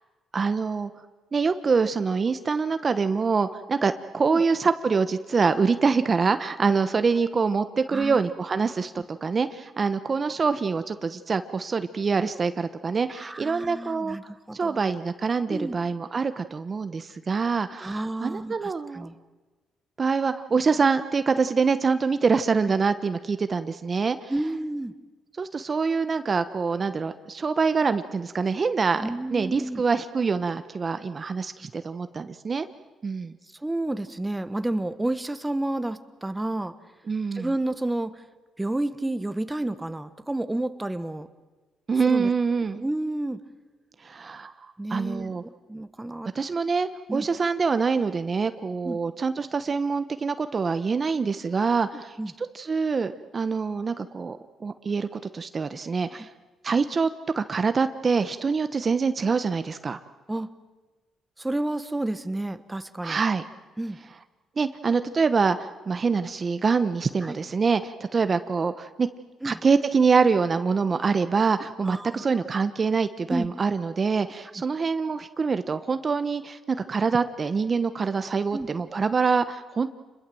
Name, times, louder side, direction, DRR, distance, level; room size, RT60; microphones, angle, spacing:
voice 1, 0.3-0.9 1.3-14.2 14.5-19.1 20.0-24.3 25.4-32.7 33.0-33.4 37.1-37.5 41.9-42.8 44.0-44.5 44.9-45.4 46.3-56.3 56.6-57.1 57.4-60.0 63.0-63.4 64.6-69.1 69.4-79.9, right 5 dB, 35° right, 10 dB, 1.0 m, -25 dB
voice 2, 13.1-15.0 15.5-15.8 17.8-19.1 24.3-24.9 29.0-29.8 33.6-36.8 37.3-38.2 38.6-41.3 42.0-42.3 42.7-43.4 44.8-45.3 45.7-46.3 47.1-47.2 48.8-49.0 51.9-52.3 56.1-56.2 60.3-60.5 61.4-63.2 63.8-64.0 67.2-67.4 69.4-69.6 71.8-72.2 73.3-73.5 78.5-78.7, right 1 dB, 10° right, 11 dB, 1.3 m, -30 dB
28.0 x 21.5 x 7.8 m, 1.2 s
cardioid pair, 90°, 0 cm